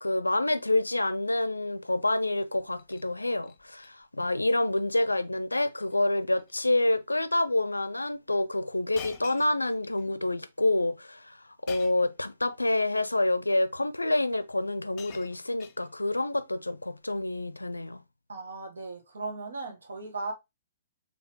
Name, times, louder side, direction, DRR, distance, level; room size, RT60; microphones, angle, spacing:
voice 1, 0.0-18.0, left 2 dB, 85° left, 0.4 m, -28 dB
Shatter, 2.6-3.1 3.4-3.9 4.2-4.5 4.8-4.9 5.7-6.0 6.3-6.6 7.3-7.4 8.9-10.1 11.7-12.2 13.2-13.3 14.3-14.4 14.7-16.2 17.1-17.4, left 8 dB, 35° left, 0.7 m, -48 dB
voice 2, 18.3-20.3, right 3 dB, 70° right, 1.2 m, -37 dB
4.2 x 3.3 x 3.0 m
figure-of-eight pair, 120°, 0 cm